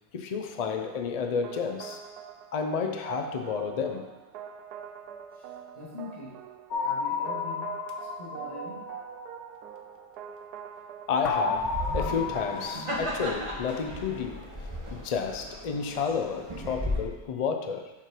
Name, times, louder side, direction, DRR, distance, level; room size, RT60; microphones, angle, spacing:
voice 1, 0.1-2.0 2.5-4.1 11.1-14.5 14.9-17.9, left 6 dB, 90° left, 5 dB, 0.3 m, -31 dB
sound 1, 0.9-12.5, right 9 dB, 85° right, 1.1 m, -44 dB
voice 2, 5.7-6.4 6.8-7.7 8.2-8.9, left 3 dB, 25° left, -7 dB, 2.1 m, -42 dB
sound 2, 6.7-9.6 11.2-14.1, left 5 dB, 70° left, 1.1 m, -33 dB
sound 3, 11.5-17.0, equal, 25° right, 0.9 m, -35 dB
7.3 x 4.8 x 4.5 m, 1.1 s
omnidirectional pair, 1.6 m